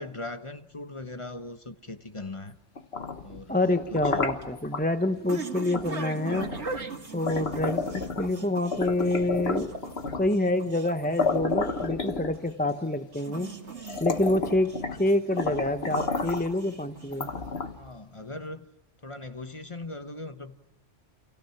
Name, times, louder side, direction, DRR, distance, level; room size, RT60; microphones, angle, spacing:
voice 1, 0.0-2.6 3.2-4.3 5.0-5.2 17.8-18.7 19.0-20.6, left 2 dB, 25° left, 8 dB, 1.2 m, -40 dB
sound 1, 2.8-4.8 5.7-5.9 6.3-8.4 8.7-10.4 10.9-11.0 11.2-12.7 13.3-13.4 13.8-15.1 15.4-16.5 17.1-17.9, left 4 dB, 60° left, 1.7 m, -31 dB
voice 2, 3.5-6.5 7.1-9.8 10.2-13.5 14.0-17.3, left 1 dB, 10° left, 9 dB, 0.8 m, -27 dB
sound 2, 3.9-17.5, right 4 dB, 70° right, 2.4 m, -41 dB
30.0 x 28.0 x 6.0 m, 0.77 s
omnidirectional pair, 1.2 m